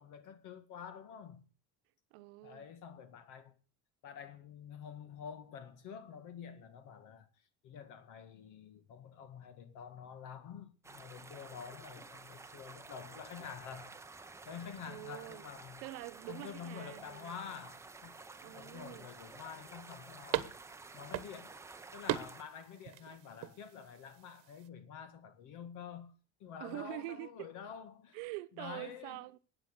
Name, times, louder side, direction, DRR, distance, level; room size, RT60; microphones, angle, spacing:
voice 1, 0.0-1.4 2.4-3.6 4.0-7.3 7.6-14.0 14.5-15.8 16.3-18.1 18.4-20.6 20.9-21.6 21.9-26.1 26.4-28.2 28.6-29.2, left 7 dB, 60° left, 2.0 m, -48 dB
voice 2, 2.1-2.7 14.9-15.5 15.8-17.4 18.4-19.1 26.6-27.5 28.1-29.4, right 19 dB, 85° right, 1.0 m, -45 dB
sound 1, 10.8-22.4, right 3 dB, 10° right, 0.7 m, -52 dB
sound 2, 17.0-24.7, right 16 dB, 65° right, 1.2 m, -43 dB
13.5 x 9.0 x 6.7 m
cardioid pair, 140°, 34 cm